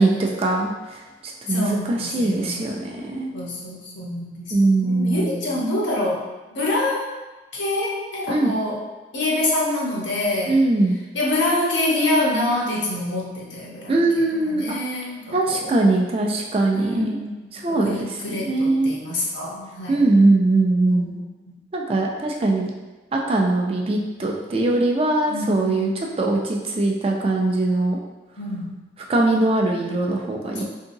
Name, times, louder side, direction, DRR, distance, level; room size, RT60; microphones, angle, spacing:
voice 1, 0.0-3.3 4.5-5.5 8.3-8.5 10.5-11.0 13.9-14.8 15.3-17.2 17.5-18.9 19.9-21.2 21.7-22.7 23.1-28.0 29.1-30.6, right 2 dB, 30° right, 0 dB, 0.3 m, -21 dB
voice 2, 1.5-2.7 3.3-6.2 6.5-7.1 7.5-8.8 9.1-10.6 11.1-15.7 16.7-20.1 20.9-21.6 25.3-26.0 28.4-28.8 30.5-30.6, left 2 dB, 80° left, -4 dB, 0.8 m, -26 dB
3.6 x 2.7 x 2.7 m, 1.2 s
head